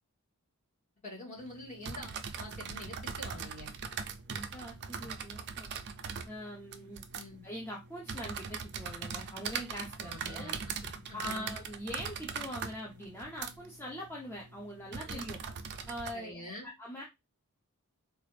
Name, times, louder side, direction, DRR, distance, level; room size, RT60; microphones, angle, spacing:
voice 1, 1.0-3.7 7.1-7.4 10.0-10.7 11.1-11.5 15.1-15.3 16.1-16.7, left 1 dB, 35° left, -3 dB, 1.7 m, -46 dB
sound 1, 1.4-16.1, right 6 dB, 50° right, 0.4 m, -41 dB
voice 2, 4.3-5.7 6.3-7.0 7.4-10.5 11.1-15.4 15.9-17.0, equal, 10° left, -2 dB, 0.6 m, -43 dB
3.9 x 2.4 x 3.2 m, 0.22 s
head